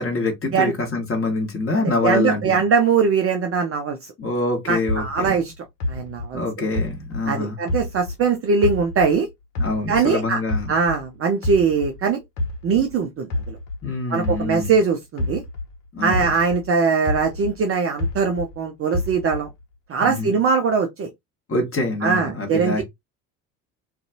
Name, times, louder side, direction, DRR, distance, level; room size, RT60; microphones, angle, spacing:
voice 1, 0.0-2.6 4.2-5.4 6.3-7.6 9.6-10.7 13.8-14.7 15.9-16.3 20.0-20.3 21.5-22.8, left 2 dB, 25° left, 1.2 m, -25 dB
voice 2, 2.0-4.1 4.7-5.5 5.9-6.7 7.3-9.3 9.9-10.4 10.7-12.2 12.6-13.6 14.1-15.4 16.0-19.5 19.9-21.1 22.0-22.8, right 5 dB, 30° right, 0.5 m, -21 dB
sound 1, 4.9-8.3 8.6-11.1 11.4-15.8 16.1-18.6 18.9-19.6, left 2 dB, 60° left, 0.9 m, -28 dB
2.5 x 2.3 x 2.7 m
figure-of-eight pair, 60°, 50 cm